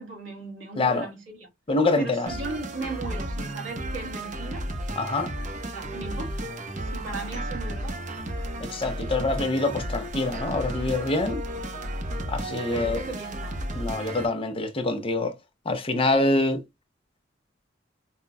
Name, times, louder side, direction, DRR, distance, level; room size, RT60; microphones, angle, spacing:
voice 1, 0.0-1.5 2.0-4.7 5.7-6.4 6.8-8.0 12.7-13.6, right 3 dB, 90° right, 1.9 m, -37 dB
voice 2, 1.7-2.3 5.0-5.3 8.6-11.4 12.3-13.0 13.7-15.3 15.7-16.6, left 2 dB, 30° left, 0.6 m, -25 dB
sound 1, 2.3-14.3, right 1 dB, 40° right, 0.7 m, -33 dB
5.4 x 2.2 x 2.2 m
head